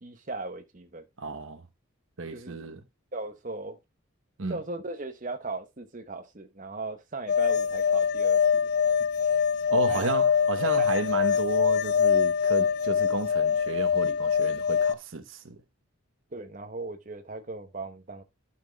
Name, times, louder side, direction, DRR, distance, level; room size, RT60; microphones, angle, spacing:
voice 1, 0.0-1.1 2.3-2.6 3.1-3.8 4.5-8.7 9.9-10.1 10.8-10.9 16.3-18.2, right 3 dB, 40° right, 0.9 m, -37 dB
voice 2, 1.2-1.6 2.2-2.8 4.4-4.6 9.7-15.6, right 3 dB, 70° right, 1.0 m, -32 dB
sound 1, 7.3-14.9, left 7 dB, 50° left, 0.5 m, -24 dB
12.5 x 5.9 x 2.3 m
head